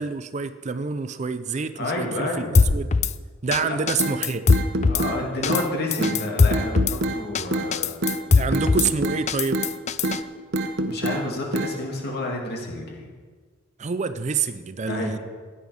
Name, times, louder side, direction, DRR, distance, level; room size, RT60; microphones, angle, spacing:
voice 1, 0.0-2.9 3.4-4.5 8.4-9.7 13.8-15.2, right 5 dB, 35° right, 12 dB, 0.4 m, -27 dB
voice 2, 1.8-2.5 3.6-3.8 4.9-7.9 8.4-8.6 10.8-13.1 14.8-15.1, left 2 dB, 50° left, -1 dB, 2.9 m, -30 dB
Drum kit / Snare drum, 2.5-3.1 3.5-3.6 3.9-5.0 5.4-5.6 5.9-7.0 7.3-7.4 7.7-8.9 9.3-10.2, left 4 dB, 35° left, 0.4 m, -20 dB
sound 1, 4.0-4.2 4.5-5.2 5.5-5.7 6.0-6.2 6.5-7.2 7.5-7.7 8.0-8.2 8.5-9.2 9.5-9.7 10.0-10.2 10.5-11.2 11.5-11.7, right 1 dB, 55° right, 1.0 m, -25 dB
16.0 x 9.9 x 5.2 m, 1.5 s
head